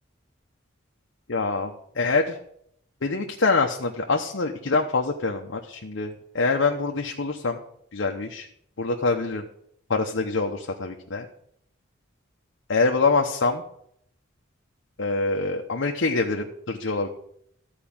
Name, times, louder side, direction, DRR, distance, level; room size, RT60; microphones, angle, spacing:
voice 1, 1.3-2.4 3.0-7.6 7.9-8.5 8.8-9.4 9.9-11.3 12.7-13.6 15.0-17.1, left 3 dB, 80° left, 2 dB, 0.9 m, -25 dB
13.5 x 4.8 x 8.8 m, 0.71 s
head